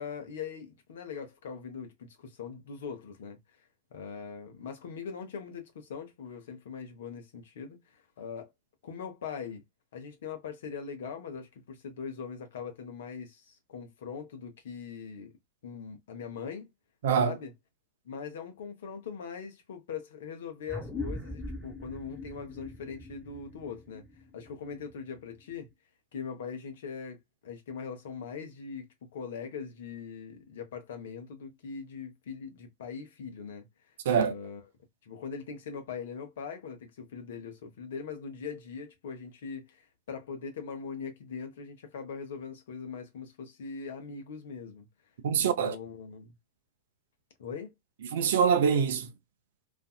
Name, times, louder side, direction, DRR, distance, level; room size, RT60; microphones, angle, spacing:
voice 1, 0.0-8.5 8.8-9.6 9.9-15.3 15.6-16.7 17.2-17.5 18.0-24.0 24.3-25.7 26.1-33.6 34.2-34.6 35.0-44.9 45.4-46.3 47.4-47.7, left 6 dB, 60° left, 0.8 m, -41 dB
voice 2, 17.0-17.3 34.0-34.3 45.2-45.7 48.1-49.1, right 7 dB, 60° right, 0.5 m, -24 dB
sound 1, 20.7-25.6, left 2 dB, ahead, 1.4 m, -41 dB
2.5 x 2.5 x 2.3 m
figure-of-eight pair, 90°, 0 cm